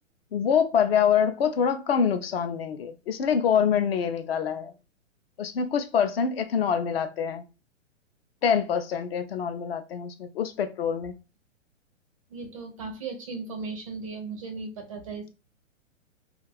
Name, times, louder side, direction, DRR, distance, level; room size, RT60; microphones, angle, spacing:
voice 1, 0.3-4.7 5.4-7.4 8.4-11.1, left 7 dB, 50° left, 0.5 m, -25 dB
voice 2, 12.3-15.3, right 4 dB, 30° right, 0.4 m, -36 dB
2.4 x 2.3 x 3.2 m
hypercardioid pair, 135°, 39 cm